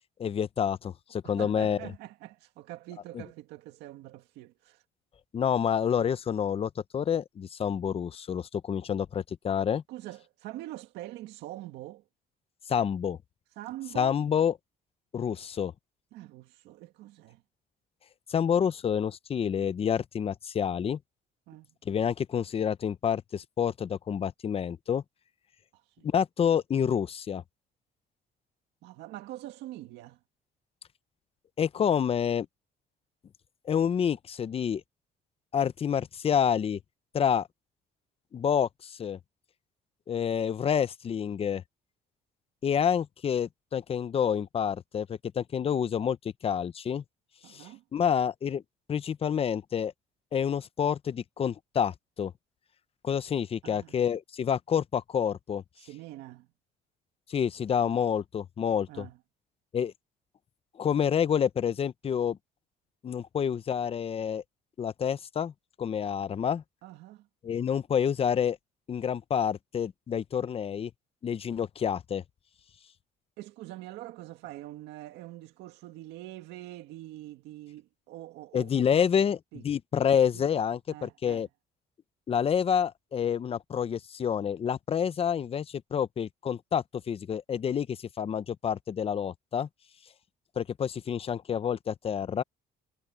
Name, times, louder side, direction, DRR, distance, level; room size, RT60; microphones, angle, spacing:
voice 1, 0.2-1.9 3.1-3.2 5.3-9.8 12.7-13.2 13.9-14.5 15.1-15.7 18.3-21.0 21.9-25.0 26.0-27.4 31.6-32.5 33.6-34.8 35.5-36.8 37.1-37.5 38.3-39.2 40.1-41.6 42.6-46.2 46.4-47.0 47.5-48.6 48.9-49.9 50.3-52.3 53.0-55.6 57.3-59.1 59.7-59.9 60.8-62.4 63.0-64.4 64.8-65.5 65.8-66.6 67.4-68.6 68.9-70.9 71.2-72.2 78.5-81.5 82.3-89.7 90.6-92.4, left 8 dB, 35° left, 0.7 m, -28 dB
voice 2, 1.2-4.8 9.9-12.0 13.6-14.2 16.1-17.4 21.5-21.7 25.7-26.1 28.8-30.2 47.4-47.8 53.6-53.9 55.8-56.5 58.9-59.2 66.8-67.3 73.4-79.2 79.5-79.6 80.3-80.4 80.9-81.5, right 16 dB, 90° right, 2.0 m, -44 dB
cardioid pair, 110°, 17 cm